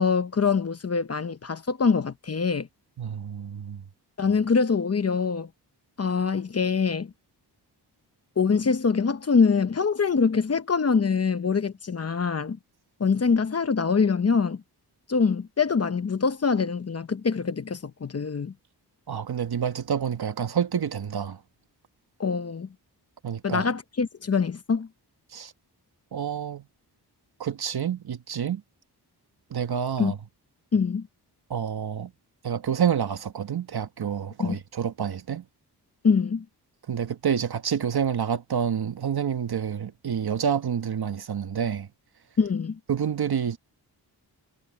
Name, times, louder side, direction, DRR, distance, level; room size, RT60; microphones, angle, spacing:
voice 1, 0.0-2.7 4.2-5.5 6.0-7.1 8.4-12.6 13.0-14.6 15.1-18.5 22.2-22.7 23.4-24.9 30.0-30.1 30.7-31.1 34.4-34.6 36.0-36.4 42.4-42.8, left 5 dB, 35° left, 0.9 m, -24 dB
voice 2, 3.0-3.8 19.1-21.4 23.2-23.6 25.3-25.5 26.1-26.6 27.4-28.6 29.5-30.2 31.5-32.1 32.4-35.4 36.9-41.9 42.9-43.6, right 8 dB, 65° right, 1.5 m, -28 dB
wide cardioid pair, 135°, 41 cm